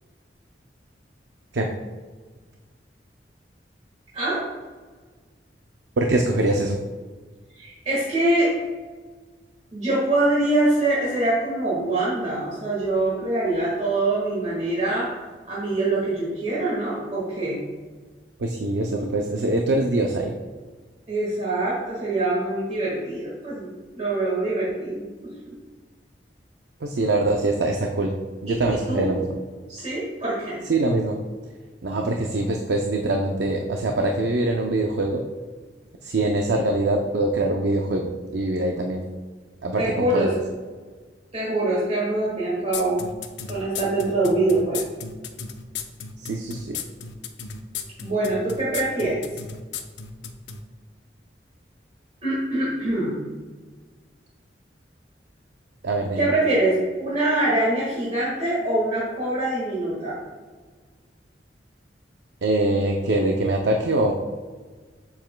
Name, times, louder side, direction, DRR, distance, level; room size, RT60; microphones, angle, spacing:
voice 1, 6.0-6.8 18.4-20.3 26.8-28.1 28.4-29.3 30.7-31.2 31.8-35.2 36.0-39.0 39.6-40.3 46.2-46.8 55.8-56.3 62.4-64.1, right 2 dB, 75° right, 2 dB, 0.5 m, -23 dB
voice 2, 7.6-8.5 9.7-15.1 15.5-17.6 18.9-19.1 21.1-23.7 24.0-25.6 28.5-28.6 28.9-29.1 29.7-30.6 39.8-40.3 41.3-43.0 43.5-44.8 48.0-49.2 52.2-53.3 56.2-60.2, right 2 dB, 40° right, -8 dB, 1.6 m, -24 dB
sound 1, 42.7-50.6, left 6 dB, 90° left, 0.6 m, -34 dB
7.6 x 7.1 x 2.2 m, 1.4 s
head